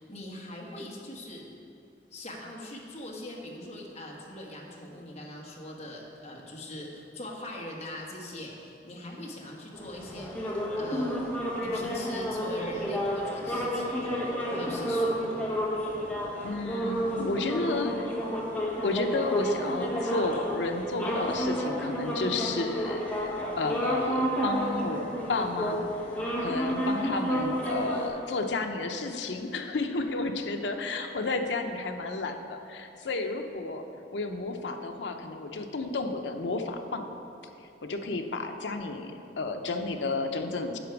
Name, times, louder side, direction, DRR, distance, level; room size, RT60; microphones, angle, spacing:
voice 1, 0.0-1.5 2.1-10.3 10.7-14.2 14.5-15.3, left 1 dB, 40° left, -2 dB, 1.3 m, -41 dB
sound 1, 9.7-28.1, equal, 10° left, 1.3 m, -31 dB
voice 2, 16.4-18.1 18.8-25.9 26.4-33.9 34.1-37.1 37.8-40.8, left 3 dB, 85° left, 5 dB, 0.7 m, -32 dB
10.0 x 6.0 x 4.6 m, 2.6 s
head